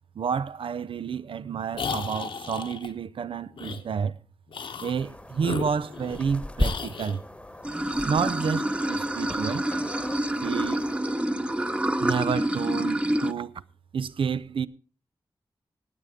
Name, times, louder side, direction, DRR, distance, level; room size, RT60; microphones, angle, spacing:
voice 1, 0.2-4.2 4.8-7.2 8.0-9.6 10.4-10.8 12.0-13.6 13.9-14.7, right 6 dB, 85° right, 0.6 m, -30 dB
sound 1, 1.7-2.9 3.6-3.8 4.5-5.0 5.4-6.3 6.6-7.2, left 5 dB, 80° left, 1.2 m, -34 dB
sound 2, 5.0-11.0, left 1 dB, 10° left, 1.1 m, -36 dB
Water / Sink (filling or washing), 7.6-13.3, right 1 dB, 15° right, 0.8 m, -27 dB
18.5 x 8.4 x 5.0 m
wide cardioid pair, 90°, 9 cm